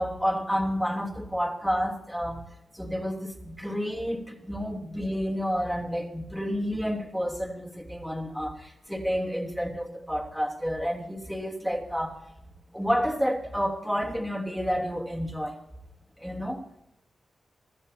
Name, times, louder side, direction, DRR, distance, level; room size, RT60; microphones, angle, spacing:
voice 1, 0.0-2.5 2.7-12.2 12.7-15.6 16.2-16.8, equal, ahead, 0 dB, 3.0 m, -30 dB
24.0 x 14.5 x 2.8 m, 0.81 s
wide cardioid pair, 95°, 0 cm